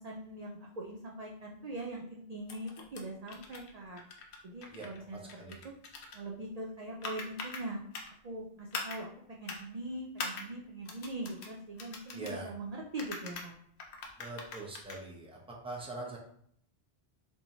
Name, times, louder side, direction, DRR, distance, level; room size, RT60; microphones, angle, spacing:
voice 1, 0.0-4.0 4.4-5.7 6.1-7.8 8.2-13.5, right 1 dB, 50° right, -2 dB, 0.5 m, -42 dB
sound 1, 2.5-3.0 3.3-3.7 4.0-5.0 5.3-6.2 7.0-7.6 7.9-8.1 8.7-9.0 9.4-9.6 10.2-10.5 10.9-11.5 11.8-12.4 13.0-13.5 13.8-15.0, left 4 dB, 75° left, 0.9 m, -42 dB
voice 2, 12.1-12.5 14.2-15.4 15.6-16.2, right 2 dB, 5° right, -2 dB, 0.6 m, -42 dB
4.6 x 2.9 x 2.7 m, 0.65 s
omnidirectional pair, 1.1 m